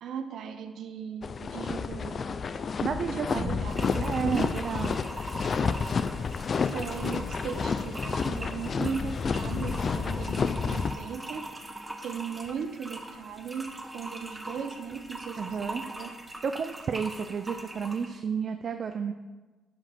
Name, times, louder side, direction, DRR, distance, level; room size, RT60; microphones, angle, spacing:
voice 1, 0.0-2.4 3.1-4.5 6.6-11.5 12.0-13.7 13.9-16.1, right 7 dB, 70° right, 9 dB, 0.8 m, -37 dB
sound 1, 1.2-10.9, left 5 dB, 45° left, 0.5 m, -30 dB
voice 2, 2.8-3.6 4.0-5.0 15.4-15.8 16.4-19.1, right 6 dB, 50° right, 8 dB, 0.5 m, -31 dB
sound 2, 3.7-18.1, right 1 dB, 15° right, 1.2 m, -42 dB
10.0 x 5.0 x 5.9 m, 1.3 s
cardioid pair, 90°, 0 cm